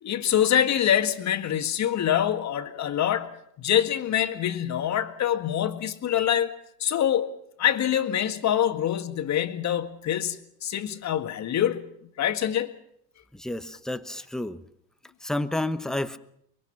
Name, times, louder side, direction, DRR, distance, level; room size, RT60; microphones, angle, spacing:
voice 1, 0.0-3.3 3.6-6.5 6.8-7.3 7.6-10.4 10.6-11.8 12.2-12.7, left 10 dB, 35° left, 1.9 m, -25 dB
voice 2, 13.3-14.6 15.2-16.2, left 1 dB, ahead, 0.9 m, -30 dB
24.0 x 22.5 x 5.9 m
supercardioid pair, 110°, 48 cm